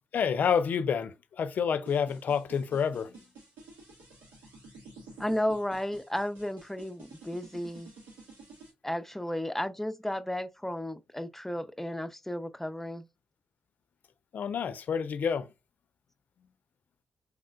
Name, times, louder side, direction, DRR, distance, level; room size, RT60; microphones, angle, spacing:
voice 1, 0.1-3.1 14.3-15.5, left 7 dB, 65° left, 0.5 m, -28 dB
sound 1, 1.9-8.7, right 3 dB, 80° right, 2.0 m, -51 dB
voice 2, 5.2-7.9 8.8-13.0, left 1 dB, 10° left, 0.7 m, -33 dB
4.9 x 3.7 x 2.4 m
supercardioid pair, 45°, 3 cm